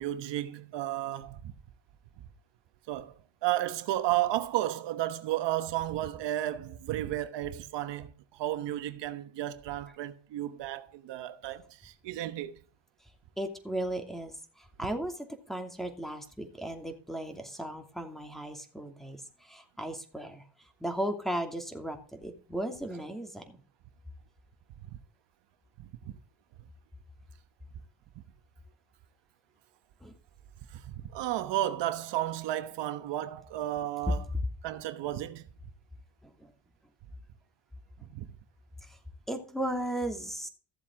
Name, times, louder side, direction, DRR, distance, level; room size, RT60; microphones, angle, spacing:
voice 1, 0.0-1.5 2.9-3.1 3.4-12.6 25.8-26.2 28.2-28.3 30.7-34.2 34.6-35.4 38.1-38.3, right 14 dB, 85° right, 1.1 m, -33 dB
voice 2, 13.4-23.6 30.0-30.2 36.2-36.5 38.8-39.0 39.3-40.5, right 1 dB, ahead, 2.6 m, -36 dB
15.0 x 7.5 x 3.7 m
cardioid pair, 105°, 41 cm